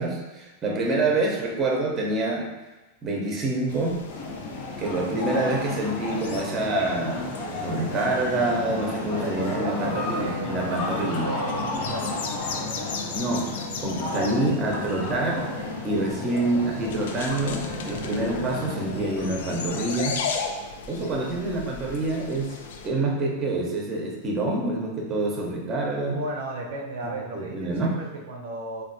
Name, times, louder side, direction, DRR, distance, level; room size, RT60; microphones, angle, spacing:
voice 1, 0.0-2.5 3.0-4.0 4.8-7.2 7.6-11.3 13.1-15.5 15.8-20.2 20.9-22.5 22.8-26.2 27.0-27.9, right 2 dB, 30° right, -1 dB, 0.7 m, -27 dB
sound 1, 3.7-22.9, left 5 dB, 75° left, 0.3 m, -38 dB
sound 2, 4.1-19.9, left 2 dB, 50° left, 0.8 m, -32 dB
voice 2, 9.1-12.2 16.2-16.4 21.0-21.1 26.0-28.8, right 2 dB, 75° right, 0 dB, 0.5 m, -35 dB
3.2 x 2.3 x 2.6 m, 1.1 s
hypercardioid pair, 120°, 0 cm